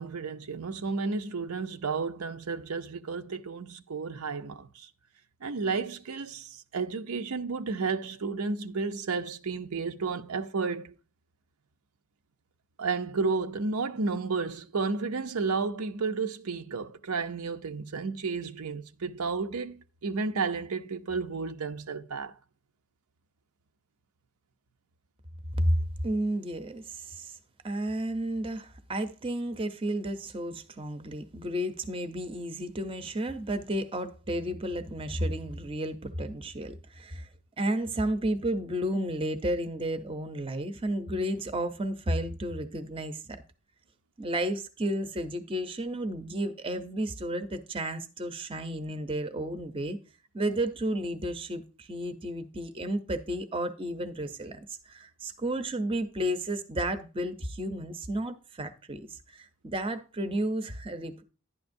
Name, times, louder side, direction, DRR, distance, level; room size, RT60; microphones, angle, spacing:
voice 1, 0.0-4.9 5.4-10.9 12.8-22.3, right 4 dB, 80° right, 0.6 m, -32 dB
voice 2, 25.5-27.4 27.6-37.3 37.6-43.4 44.2-50.0 50.3-61.2, right 1 dB, 25° right, 0.6 m, -32 dB
11.5 x 9.5 x 2.6 m
head